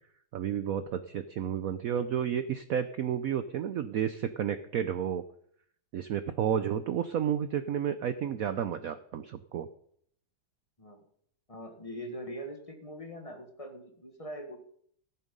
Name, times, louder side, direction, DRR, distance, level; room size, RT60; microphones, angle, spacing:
voice 1, 0.3-5.2 5.9-9.7, right 9 dB, 85° right, 11 dB, 0.7 m, -31 dB
voice 2, 11.5-14.6, equal, 20° left, 4 dB, 1.4 m, -42 dB
14.5 x 7.3 x 5.3 m, 0.65 s
omnidirectional pair, 2.2 m